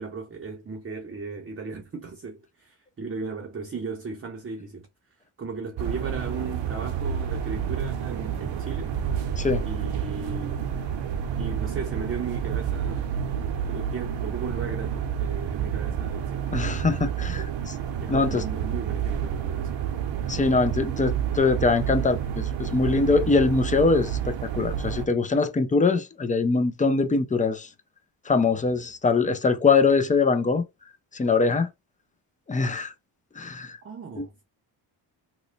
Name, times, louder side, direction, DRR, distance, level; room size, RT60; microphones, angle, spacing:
voice 1, 0.0-4.9 5.4-9.0 9.6-10.7 11.4-16.5 17.3-17.6 18.0-19.9 33.8-34.4, right 4 dB, 30° right, 0.6 m, -36 dB
sound 1, 5.8-25.1, right 8 dB, 65° right, 0.7 m, -29 dB
voice 2, 9.4-9.7 16.5-17.7 18.1-18.4 20.3-27.7 28.3-30.7 31.1-31.7 32.5-32.9 33.4-33.8 34.2-34.3, left 4 dB, 20° left, 0.3 m, -23 dB
3.0 x 2.1 x 3.9 m
cardioid pair, 125°, 47 cm